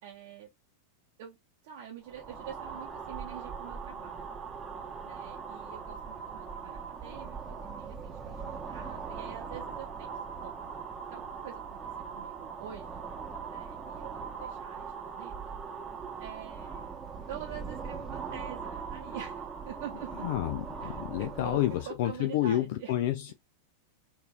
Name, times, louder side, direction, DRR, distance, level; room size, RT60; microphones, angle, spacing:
voice 1, 0.0-0.5 1.2-1.4 1.6-4.3 5.0-10.6 11.1-11.8 12.1-13.1 13.5-15.5 16.2-17.0 17.3-20.2 20.8-22.9, right 9 dB, 50° right, 0.7 m, -46 dB
sound 1, 2.0-21.9, right 6 dB, 10° right, 0.8 m, -40 dB
voice 2, 20.2-23.3, left 13 dB, 50° left, 0.4 m, -29 dB
3.9 x 2.6 x 2.6 m
figure-of-eight pair, 90°, 0 cm